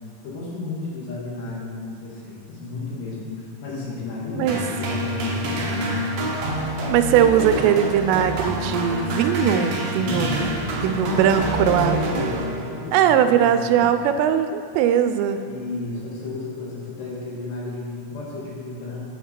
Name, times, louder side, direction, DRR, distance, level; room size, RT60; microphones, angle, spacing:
voice 1, 0.2-6.1 9.9-13.9 15.5-19.0, left 3 dB, 80° left, -5 dB, 4.0 m, -32 dB
sound 1, 4.5-13.0, right 1 dB, 70° right, 1.6 m, -27 dB
voice 2, 6.9-10.3 10.8-12.0 12.9-15.5, right 9 dB, 90° right, 9 dB, 2.7 m, -20 dB
9.1 x 8.1 x 4.3 m, 2.7 s
omnidirectional pair, 4.9 m